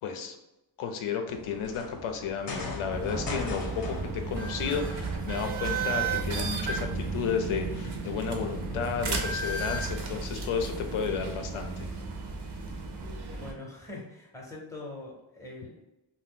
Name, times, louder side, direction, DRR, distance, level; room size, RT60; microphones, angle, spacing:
voice 1, 0.0-0.4 0.8-11.9, left 6 dB, 90° left, 5 dB, 0.6 m, -33 dB
sound 1, 1.3-7.6, left 2 dB, 45° left, 0.6 m, -41 dB
sound 2, 2.9-13.5, right 4 dB, 55° right, 0.5 m, -33 dB
voice 2, 13.3-15.9, left 2 dB, 5° left, -2 dB, 0.6 m, -43 dB
2.7 x 2.1 x 3.6 m, 0.94 s
wide cardioid pair, 160°, 48 cm